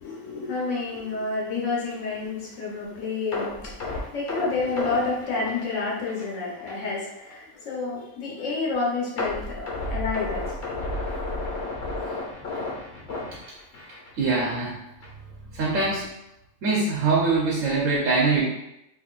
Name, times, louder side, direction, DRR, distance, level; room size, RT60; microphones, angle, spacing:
voice 1, 0.0-10.7, left 3 dB, 80° left, -4 dB, 1.2 m, -29 dB
sound 1, 3.3-6.4 6.7-6.8 7.3-7.4 9.2-14.1 14.4-14.6 15.0-15.1, left 2 dB, 60° left, 1.1 m, -32 dB
voice 2, 14.2-14.7 15.5-16.1 16.6-18.5, right 3 dB, 85° right, -4 dB, 1.1 m, -23 dB
3.7 x 3.0 x 2.4 m, 0.87 s
omnidirectional pair, 1.3 m